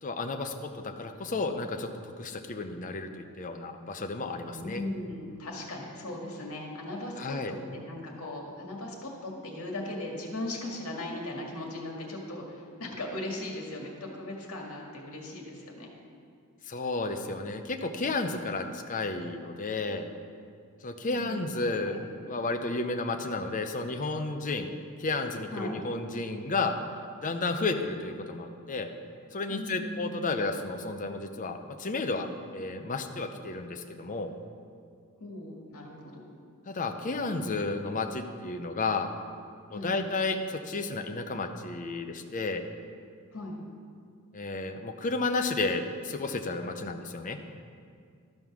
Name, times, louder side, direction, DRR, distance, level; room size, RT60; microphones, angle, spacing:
voice 1, 0.0-1.9 2.2-4.8 7.2-7.5 16.7-20.1 20.8-22.0 22.3-26.7 27.2-28.9 29.3-34.3 36.7-39.1 39.7-42.6 44.3-47.4, left 3 dB, 35° left, 6 dB, 0.6 m, -32 dB
voice 2, 4.5-15.9 21.1-21.5 21.8-22.0 25.5-25.7 29.5-30.1 35.2-36.2 39.7-39.9 43.3-43.6, left 1 dB, 70° left, -1 dB, 1.9 m, -38 dB
13.0 x 5.4 x 6.1 m, 2.2 s
head